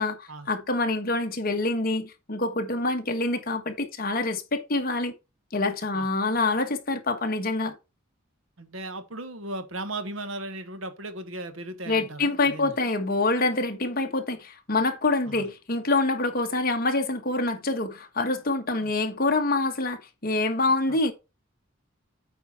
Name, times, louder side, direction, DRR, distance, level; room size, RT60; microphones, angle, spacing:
voice 1, 0.0-5.1 5.5-7.7 11.9-21.1, left 2 dB, 45° left, 1.3 m, -26 dB
voice 2, 8.6-12.7 15.3-15.5 18.7-18.9 20.9-21.0, right 2 dB, 70° right, 1.3 m, -37 dB
8.4 x 4.5 x 4.3 m
head